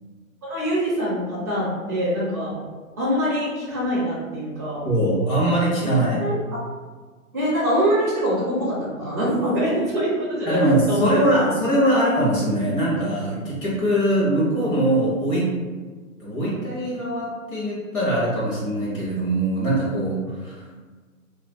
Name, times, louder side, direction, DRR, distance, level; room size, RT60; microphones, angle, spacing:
voice 1, 0.4-2.6 3.0-4.9 6.2-6.4 7.3-10.6 10.9-11.2 11.9-12.0, equal, 15° right, -9 dB, 0.4 m, -24 dB
voice 2, 4.8-6.2 10.5-15.5 16.2-20.6, right 1 dB, 20° left, -7 dB, 0.7 m, -22 dB
2.4 x 2.2 x 3.3 m, 1.4 s
hypercardioid pair, 145°, 42 cm